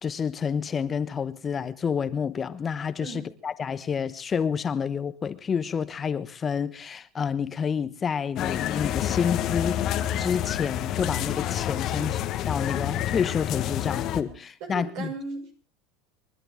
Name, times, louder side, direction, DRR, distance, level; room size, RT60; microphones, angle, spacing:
voice 1, 0.0-15.1, left 6 dB, 30° left, 1.0 m, -29 dB
sound 1, 8.4-14.2, left 11 dB, 50° left, 1.4 m, -28 dB
voice 2, 14.7-15.5, right 4 dB, 60° right, 5.9 m, -37 dB
29.5 x 11.5 x 3.7 m
hypercardioid pair, 80°, 0 cm